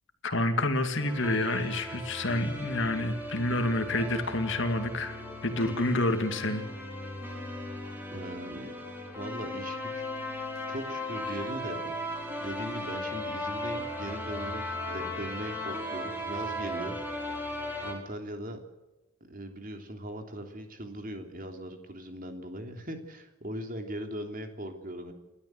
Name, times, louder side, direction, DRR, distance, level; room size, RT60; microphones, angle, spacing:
voice 1, 0.2-6.6, left 1 dB, 55° left, 7 dB, 2.4 m, -28 dB
sound 1, 1.0-17.9, left 1 dB, 10° right, 4.6 m, -37 dB
voice 2, 8.1-8.8 9.1-10.0 10.7-12.0 12.4-17.0 17.8-18.6 19.3-25.1, right 1 dB, 40° right, 5 dB, 3.3 m, -39 dB
30.0 x 13.0 x 7.9 m, 1.1 s
head